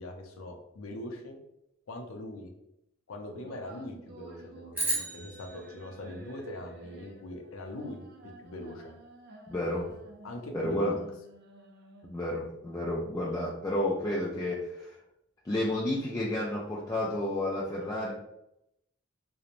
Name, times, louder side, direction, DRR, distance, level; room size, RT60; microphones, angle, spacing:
voice 1, 0.0-1.4 1.9-2.5 3.1-8.9 10.2-11.0, left 1 dB, 85° left, 3 dB, 0.5 m, -42 dB
sound 1, 3.4-12.4, right 3 dB, 50° right, 0.4 m, -52 dB
sound 2, 4.7-7.2, right 1 dB, 10° right, 0.9 m, -36 dB
voice 2, 9.5-9.9 10.5-11.0 12.0-15.0 15.4-18.1, left 1 dB, 15° left, -5 dB, 0.3 m, -31 dB
2.9 x 2.0 x 2.4 m, 0.82 s
head